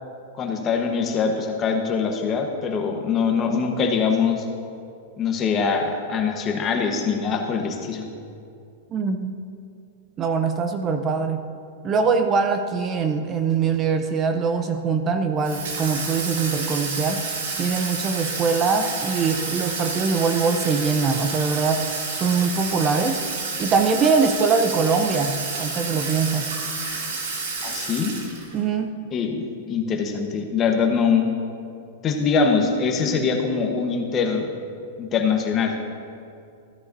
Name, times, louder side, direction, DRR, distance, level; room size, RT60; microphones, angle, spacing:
voice 1, 0.4-4.4 5.2-8.0 27.6-28.1 29.1-31.3 32.0-34.5 35.0-35.8, left 5 dB, 25° left, 3 dB, 1.1 m, -23 dB
voice 2, 8.9-9.3 10.2-11.5 11.8-17.2 17.6-23.2 23.6-26.5 28.5-29.0, right 5 dB, 25° right, 7 dB, 0.5 m, -23 dB
Water tap faucet / Sink (filling or washing), 15.4-28.6, right 4 dB, 80° right, 2.4 m, -30 dB
14.0 x 9.7 x 2.7 m, 2.5 s
supercardioid pair, 140°, 0 cm